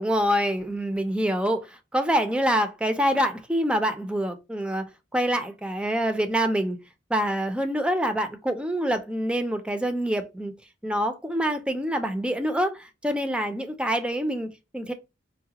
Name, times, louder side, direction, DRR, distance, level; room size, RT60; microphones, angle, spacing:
voice 1, 0.0-6.8 7.1-10.5 10.8-14.9, equal, 5° right, 0.4 m, -26 dB
4.6 x 2.1 x 2.8 m
head